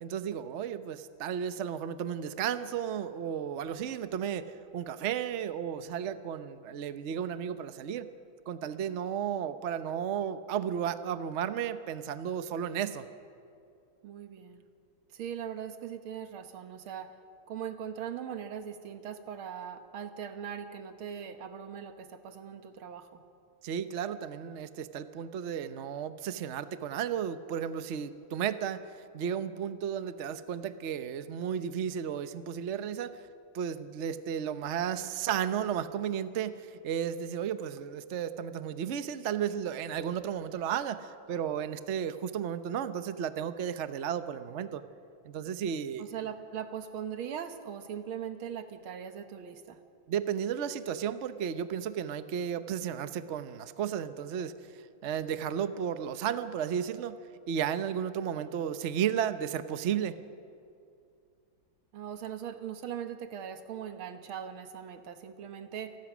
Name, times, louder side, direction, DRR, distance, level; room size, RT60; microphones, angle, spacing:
voice 1, 0.0-4.5 4.7-8.1 8.5-13.1 23.6-28.8 29.1-33.2 33.5-44.8 45.2-46.0 50.1-54.5 55.0-57.2 57.5-60.2, right 8 dB, 50° right, 11 dB, 0.8 m, -33 dB
voice 2, 14.0-14.6 15.1-17.1 17.5-23.2 46.0-49.8 61.9-66.0, right 8 dB, 90° right, 8 dB, 2.1 m, -40 dB
28.0 x 19.5 x 6.2 m, 2.4 s
omnidirectional pair, 2.2 m